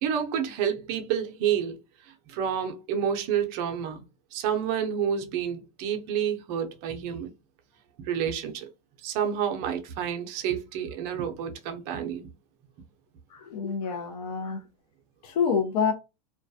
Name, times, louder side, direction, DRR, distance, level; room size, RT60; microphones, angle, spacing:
voice 1, 0.0-1.8 2.3-4.0 4.3-7.3 8.1-8.7 9.0-12.3, right 8 dB, 45° right, 0.5 m, -29 dB
voice 2, 13.3-14.6 15.2-15.9, left 6 dB, 80° left, 0.6 m, -27 dB
2.3 x 2.1 x 2.6 m
supercardioid pair, 155°, 19 cm